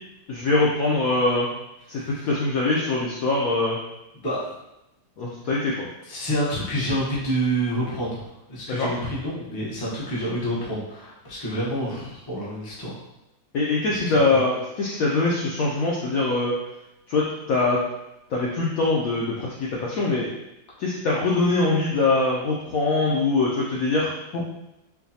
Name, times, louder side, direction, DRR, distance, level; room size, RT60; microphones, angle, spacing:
voice 1, 0.3-1.5 1.9-3.8 5.2-5.9 8.7-8.9 13.5-16.5 17.1-17.8 18.3-20.3 20.8-24.5, left 3 dB, 75° left, -4 dB, 0.8 m, -23 dB
voice 2, 1.9-2.3 4.2-4.5 6.1-13.0 14.3-14.4, right 1 dB, 30° left, -7 dB, 0.4 m, -28 dB
4.6 x 2.2 x 2.7 m, 0.89 s
omnidirectional pair, 2.0 m